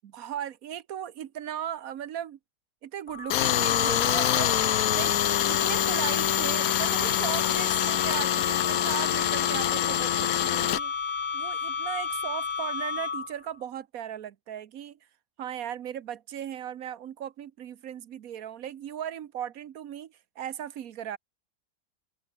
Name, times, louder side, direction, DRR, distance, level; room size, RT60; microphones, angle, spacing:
voice 1, 0.0-2.4 2.8-4.6 4.9-10.9 11.3-15.0 15.4-21.2, right 10 dB, 75° right, 1.3 m, -37 dB
sound 1, 3.1-13.5, left 5 dB, 35° left, 1.3 m, -32 dB
Tools, 3.3-10.8, left 12 dB, 75° left, 1.1 m, -26 dB
open air
omnidirectional pair, 1.5 m